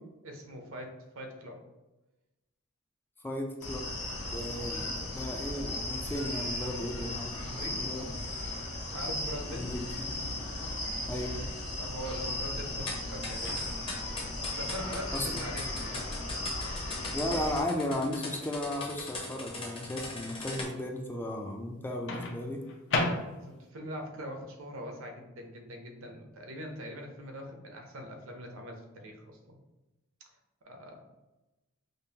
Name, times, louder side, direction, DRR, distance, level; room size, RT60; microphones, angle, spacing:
voice 1, 0.2-1.6 4.6-4.7 7.4-7.9 8.9-9.7 11.8-13.5 14.5-16.8 23.4-29.6 30.7-31.0, equal, 70° right, 3 dB, 0.7 m, -42 dB
voice 2, 3.2-3.9 4.3-8.1 9.5-9.8 11.1-11.3 15.1-15.4 17.1-22.6, left 1 dB, 10° left, 1 dB, 0.3 m, -35 dB
sound 1, 3.6-17.6, left 1 dB, 75° left, 0.9 m, -36 dB
sound 2, 12.9-20.6, left 3 dB, 25° left, 0.7 m, -40 dB
Microwave oven, 13.4-14.1 16.1-16.3 22.1-23.7, left 2 dB, 60° left, 0.6 m, -34 dB
5.2 x 2.0 x 2.8 m, 1.0 s
head